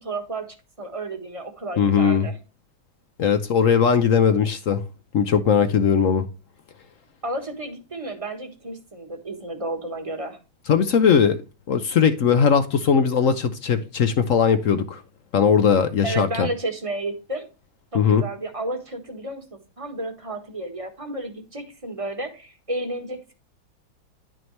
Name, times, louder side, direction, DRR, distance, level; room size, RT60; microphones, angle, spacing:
voice 1, 0.0-0.5 0.8-2.4 7.2-10.4 16.0-17.5 17.9-23.3, right 2 dB, 20° right, 1.2 m, -32 dB
voice 2, 1.8-2.3 3.2-4.8 5.1-6.2 10.7-11.4 11.7-15.0 15.3-16.5 17.9-18.2, left 7 dB, 65° left, 0.8 m, -19 dB
11.0 x 6.1 x 3.2 m
omnidirectional pair, 2.2 m